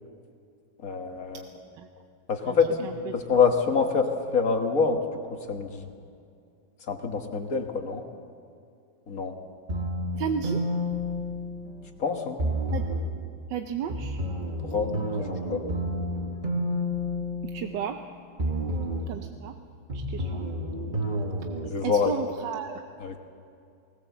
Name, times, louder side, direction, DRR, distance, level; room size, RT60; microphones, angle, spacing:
voice 1, 0.8-1.5 2.3-5.0 5.3-5.9 6.9-8.0 9.1-9.4 12.0-12.4 14.6-14.9 15.2-15.6 21.6-22.1 23.0-23.2, left 5 dB, 50° left, 4 dB, 1.8 m, -26 dB
voice 2, 2.8-3.1 10.2-10.6 12.7-12.8 13.5-14.2 17.4-18.0 19.1-19.6 19.9-20.5 21.8-22.8, right 8 dB, 75° right, 6 dB, 1.4 m, -33 dB
sound 1, 9.7-11.9 12.4-13.2 13.9-18.0 18.4-19.2 19.9-21.7, equal, 30° right, 1.3 m, -30 dB
20.0 x 18.5 x 7.2 m, 2.4 s
omnidirectional pair, 2.0 m